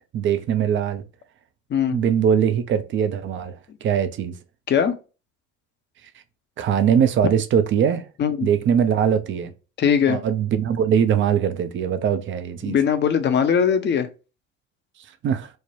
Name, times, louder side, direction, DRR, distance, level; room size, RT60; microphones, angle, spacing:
voice 1, 0.1-1.0 1.9-4.3 6.6-8.0 8.4-9.5 10.1-12.7 15.2-15.5, right 8 dB, 30° right, 0.4 m, -21 dB
voice 2, 9.8-10.2 12.6-14.1, left 7 dB, 25° left, 0.5 m, -20 dB
3.2 x 2.1 x 2.6 m
hypercardioid pair, 65°, 41 cm